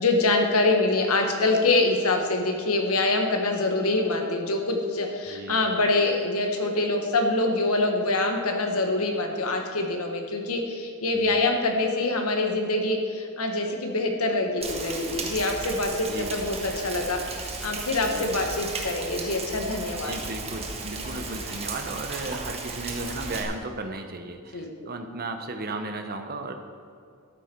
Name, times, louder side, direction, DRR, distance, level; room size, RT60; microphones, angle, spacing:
voice 1, 0.0-20.2 24.5-24.7, left 2 dB, 80° left, 3 dB, 1.6 m, -25 dB
Rain, 14.6-23.4, right 3 dB, 30° right, 1.4 m, -35 dB
voice 2, 20.0-26.5, right 2 dB, 45° right, 6 dB, 1.0 m, -35 dB
12.5 x 9.0 x 4.6 m, 2.3 s
head